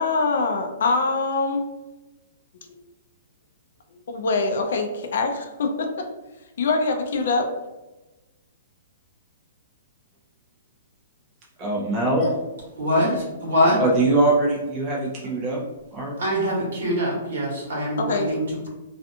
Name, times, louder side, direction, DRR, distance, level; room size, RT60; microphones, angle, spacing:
voice 1, 0.0-1.7 2.7-2.8 4.1-6.1 6.6-7.5 18.0-18.3, left 3 dB, 55° left, 0.4 m, -24 dB
voice 2, 11.6-12.4 13.8-15.6 15.9-16.1, right 2 dB, 20° right, 0.5 m, -22 dB
voice 3, 12.8-13.1 13.4-13.8 16.2-18.7, equal, 65° right, 1.1 m, -23 dB
2.4 x 2.3 x 2.7 m
hypercardioid pair, 180°, 0 cm